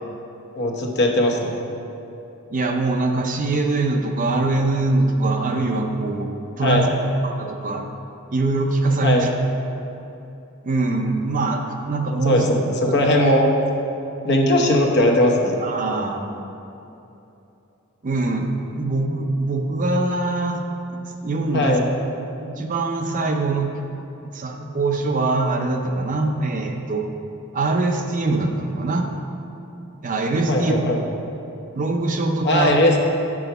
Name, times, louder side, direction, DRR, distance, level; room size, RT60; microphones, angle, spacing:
voice 1, 0.5-1.7 6.6-7.0 9.0-9.3 12.2-13.5 14.2-15.6 21.5-21.9 30.5-31.0 32.4-33.0, left 1 dB, 50° left, 1 dB, 0.9 m, -19 dB
voice 2, 2.5-6.3 6.6-6.9 7.2-7.9 8.3-9.3 10.6-11.6 11.9-12.5 15.6-16.2 18.0-20.6 20.9-21.8 22.4-23.7 24.2-27.0 27.5-29.1 30.0-30.7 31.7-32.7, right 2 dB, 40° right, 3 dB, 0.6 m, -23 dB
6.2 x 5.8 x 6.7 m, 2.8 s
head